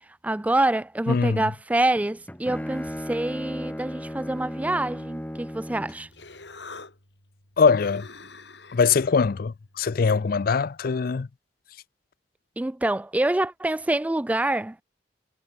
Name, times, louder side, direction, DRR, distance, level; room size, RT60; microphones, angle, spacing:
voice 1, 0.2-6.1 12.6-14.8, right 2 dB, 10° right, 0.3 m, -26 dB
voice 2, 1.1-1.4 7.6-8.1 8.7-11.3, left 5 dB, 55° left, 0.5 m, -22 dB
Bowed string instrument, 2.0-6.1, equal, 10° left, 2.2 m, -35 dB
Human voice, 5.7-10.9, left 3 dB, 75° left, 7.4 m, -47 dB
head